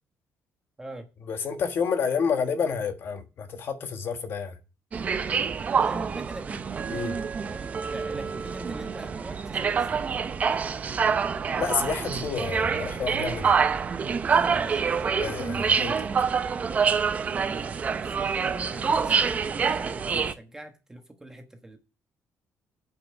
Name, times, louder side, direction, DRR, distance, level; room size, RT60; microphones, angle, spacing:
voice 1, 1.3-4.6 6.9-7.2 11.6-13.6 15.2-16.1, left 6 dB, 45° left, 1.3 m, -29 dB
sound 1, 4.9-20.3, right 6 dB, 25° right, 0.5 m, -26 dB
voice 2, 5.7-6.7 7.5-10.2 14.3-14.9 17.5-21.8, right 1 dB, 10° right, 1.2 m, -43 dB
8.5 x 5.6 x 7.9 m
cardioid pair, 180°, 6 cm